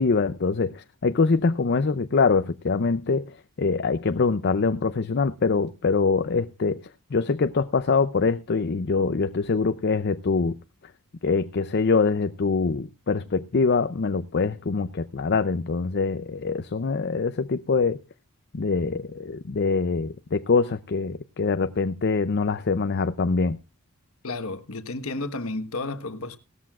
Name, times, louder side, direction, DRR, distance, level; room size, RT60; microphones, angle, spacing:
voice 1, 0.0-6.8 7.1-10.5 11.2-18.0 18.5-23.6, left 4 dB, 50° left, 0.5 m, -24 dB
voice 2, 24.2-26.4, left 2 dB, 70° left, 1.3 m, -32 dB
17.5 x 13.5 x 2.4 m
head